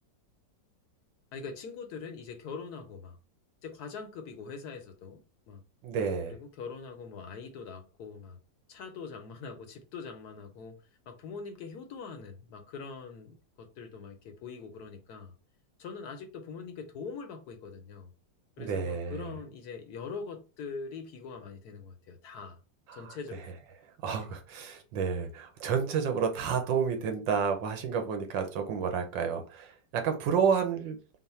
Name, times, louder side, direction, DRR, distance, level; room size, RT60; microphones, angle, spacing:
voice 1, 1.3-3.2 3.6-5.2 5.5-5.6 6.3-8.4 8.7-10.8 11.1-15.3 15.8-18.1 18.6-22.6 22.9-23.6 24.1-24.3, left 5 dB, 70° left, 1.0 m, -43 dB
voice 2, 5.8-6.3 18.6-19.3 22.9-23.2 24.0-31.0, right 6 dB, 80° right, 1.5 m, -30 dB
3.8 x 2.1 x 4.2 m
omnidirectional pair, 2.0 m